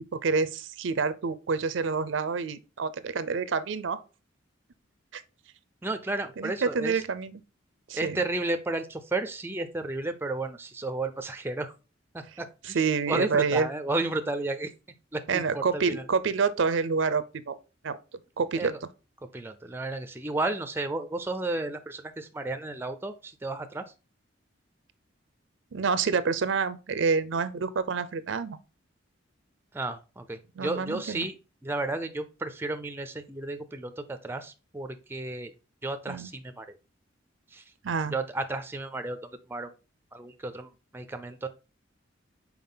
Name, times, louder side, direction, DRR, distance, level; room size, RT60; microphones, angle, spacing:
voice 1, 0.1-4.0 5.1-5.2 6.4-7.4 7.9-8.2 12.6-13.7 15.3-17.6 17.8-18.0 18.4-18.7 25.7-28.6 30.6-31.3 36.1-36.3 37.8-38.2, right 5 dB, 70° right, 0.5 m, -28 dB
voice 2, 5.8-7.0 7.9-11.7 12.1-12.8 13.1-14.7 15.1-16.0 18.5-18.8 19.3-23.8 29.7-31.4 31.6-35.5 35.8-36.8 37.5-37.6 38.1-39.2 39.5-39.7 40.1-41.5, right 2 dB, 10° right, 0.4 m, -33 dB
5.5 x 4.6 x 3.8 m
head